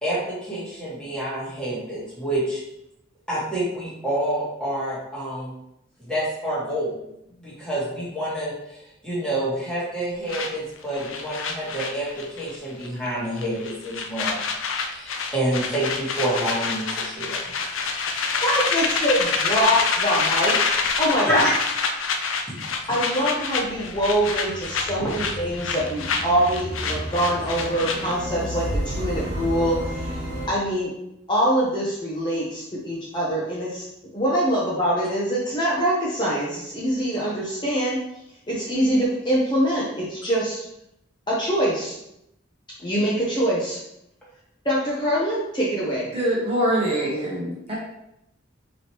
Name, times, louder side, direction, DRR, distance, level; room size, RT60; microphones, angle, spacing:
voice 1, 0.0-2.6 3.3-5.5 6.0-7.0 7.4-14.4 14.7-17.5 21.2-21.5, right 1 dB, 5° left, -9 dB, 1.5 m, -28 dB
sound 1, 10.3-12.6 12.8-13.1 13.4-28.3, left 5 dB, 90° left, 0.5 m, -27 dB
voice 2, 18.4-20.5 21.0-21.5 22.9-30.2 30.5-30.9 31.3-33.9 34.1-38.0 38.5-40.6 41.3-42.0 42.8-43.8 44.6-46.1, equal, 25° left, -6 dB, 0.7 m, -24 dB
sound 2, 23.2-30.5, equal, 55° right, 1.6 m, -32 dB
voice 3, 46.1-47.8, right 1 dB, 30° right, -5 dB, 0.9 m, -24 dB
4.8 x 3.0 x 3.0 m, 0.81 s
head